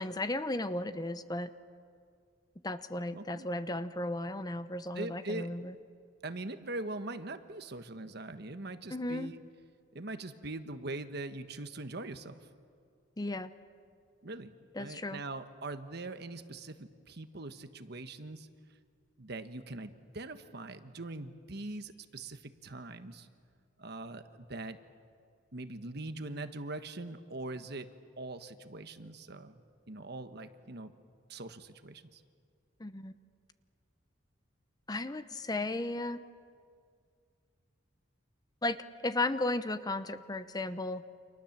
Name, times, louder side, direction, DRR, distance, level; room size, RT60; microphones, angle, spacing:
voice 1, 0.0-1.5 2.6-5.7 8.9-9.3 13.2-13.5 14.7-15.2 32.8-33.2 34.9-36.2 38.6-38.8 39.0-41.0, left 2 dB, 20° left, 12 dB, 0.7 m, -35 dB
voice 2, 3.1-3.5 4.9-5.5 6.2-9.4 9.9-12.4 14.2-18.5 19.2-23.3 23.8-24.8 25.5-27.9 28.2-29.6 29.9-30.9 31.3-32.2, right 2 dB, 60° right, 9 dB, 1.3 m, -42 dB
29.5 x 26.5 x 7.4 m, 2.2 s
head